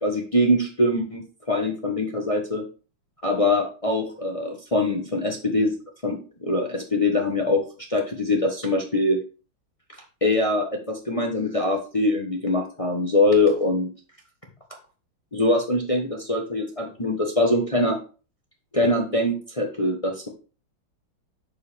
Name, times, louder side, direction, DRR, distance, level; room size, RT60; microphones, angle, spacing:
voice 1, 0.0-2.6 3.2-5.7 6.0-7.6 7.9-9.2 10.2-13.9 15.3-18.0 18.7-20.3, left 1 dB, 25° left, 1 dB, 0.7 m, -23 dB
7.9 x 6.4 x 3.4 m, 0.36 s
omnidirectional pair, 2.1 m